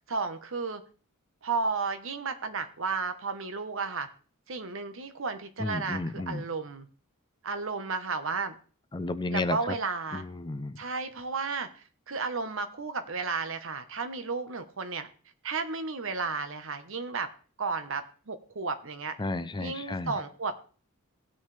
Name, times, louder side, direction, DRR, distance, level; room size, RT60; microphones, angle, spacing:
voice 1, 0.1-0.8 1.4-4.1 4.5-6.9 7.4-8.5 9.3-10.2 10.8-11.7 12.1-15.1 15.4-17.3 17.6-19.2 19.6-20.6, right 4 dB, 65° right, 9 dB, 1.1 m, -33 dB
voice 2, 5.6-6.4 8.9-9.7 10.1-10.8 19.2-20.1, left 2 dB, 20° left, 12 dB, 0.5 m, -32 dB
18.5 x 6.3 x 3.4 m, 0.40 s
head